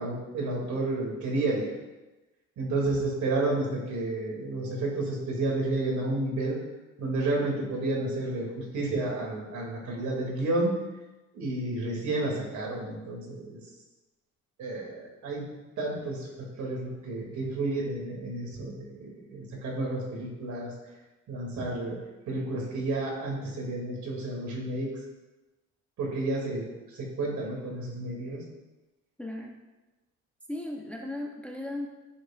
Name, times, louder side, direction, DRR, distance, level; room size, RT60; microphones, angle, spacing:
voice 1, 0.0-1.7 2.6-6.6 7.0-10.7 11.3-13.6 14.6-15.5 15.8-20.7 21.3-22.0 22.3-24.9 26.0-26.6 26.9-28.4, right 2 dB, 70° right, -1 dB, 2.7 m, -31 dB
voice 2, 29.2-29.5 30.5-31.9, left 1 dB, 5° left, 1 dB, 0.8 m, -36 dB
11.0 x 6.9 x 2.5 m, 1.1 s
cardioid pair, 125°, 30 cm